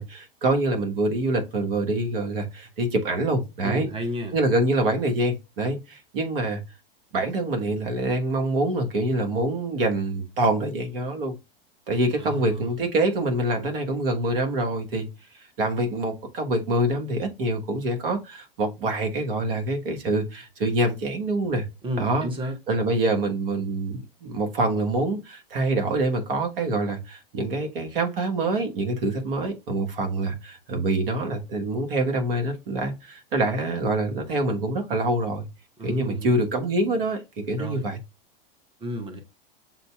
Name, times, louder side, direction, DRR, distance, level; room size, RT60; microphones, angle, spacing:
voice 1, 0.0-3.9 4.3-6.6 7.1-11.3 11.9-15.1 15.6-21.6 22.0-22.3 22.7-35.5 35.8-37.2 37.5-38.0, right 2 dB, 70° right, 1.2 m, -25 dB
voice 2, 3.6-4.4 12.2-12.7 21.8-22.6 35.8-36.3 37.6-37.9 38.8-39.2, equal, 15° right, 1.0 m, -31 dB
7.5 x 2.7 x 2.3 m
hypercardioid pair, 100°, 29 cm